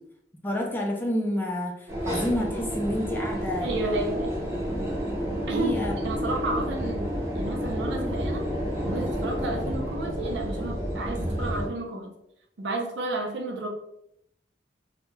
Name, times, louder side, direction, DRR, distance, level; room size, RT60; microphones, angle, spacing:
voice 1, 0.4-3.7 5.5-5.9, left 1 dB, 10° left, 1 dB, 0.3 m, -29 dB
sound 1, 1.9-11.7, equal, 15° right, 0.7 m, -30 dB
voice 2, 3.6-4.3 5.5-5.7 6.0-8.4 8.8-12.1 12.6-13.7, right 2 dB, 75° right, 1 dB, 0.5 m, -31 dB
2.2 x 2.1 x 3.0 m, 0.76 s
head